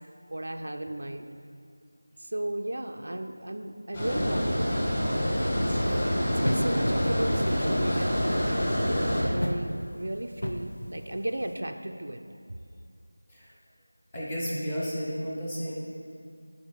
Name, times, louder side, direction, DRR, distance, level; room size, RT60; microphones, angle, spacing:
voice 1, 0.3-1.3 2.2-5.4 5.6-5.9 6.2-8.4 8.8-9.0 9.3-12.2, right 1 dB, 55° right, 5 dB, 0.5 m, -35 dB
Water, 3.9-9.2, equal, 25° left, 1.9 m, -26 dB
sound 1, 6.4-11.5, equal, 55° left, 0.8 m, -35 dB
voice 2, 14.1-15.7, equal, 10° left, -6 dB, 1.0 m, -32 dB
14.5 x 4.9 x 4.7 m, 2.5 s
figure-of-eight pair, 170°, 0 cm